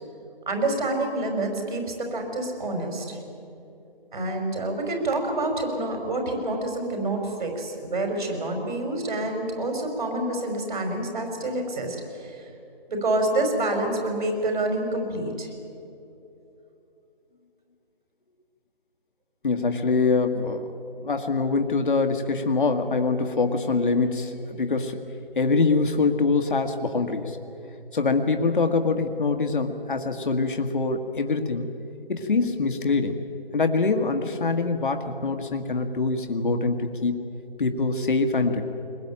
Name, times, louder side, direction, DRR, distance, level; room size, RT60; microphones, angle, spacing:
voice 1, 0.5-3.2 4.1-12.5 12.9-15.5, right 2 dB, 55° right, 3 dB, 5.6 m, -27 dB
voice 2, 19.4-20.7 21.0-25.0 25.4-27.4 27.9-31.7 32.1-33.2 33.5-37.3 37.6-38.6, left 4 dB, 55° left, 6 dB, 1.8 m, -24 dB
22.5 x 21.0 x 8.8 m, 2.9 s
figure-of-eight pair, 155°, 29 cm